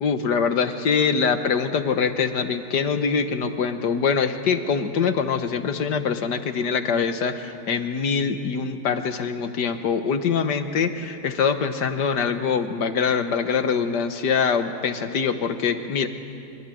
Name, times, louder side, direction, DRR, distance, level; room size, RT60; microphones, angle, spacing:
voice 1, 0.0-16.1, left 6 dB, 85° left, 8 dB, 1.9 m, -24 dB
25.0 x 24.5 x 9.3 m, 2.7 s
omnidirectional pair, 1.8 m